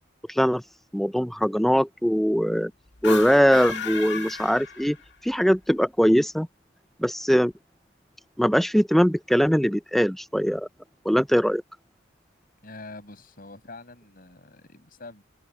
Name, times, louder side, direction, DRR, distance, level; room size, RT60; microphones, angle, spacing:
voice 1, 0.3-0.6 0.9-2.7 3.0-5.0 5.2-6.5 7.0-7.5 8.4-10.7 11.0-11.6, equal, ahead, 0.8 m, -21 dB
sound 1, 2.9-5.3, left 4 dB, 60° left, 2.0 m, -34 dB
voice 2, 12.6-15.2, left 2 dB, 45° left, 7.0 m, -44 dB
open air
head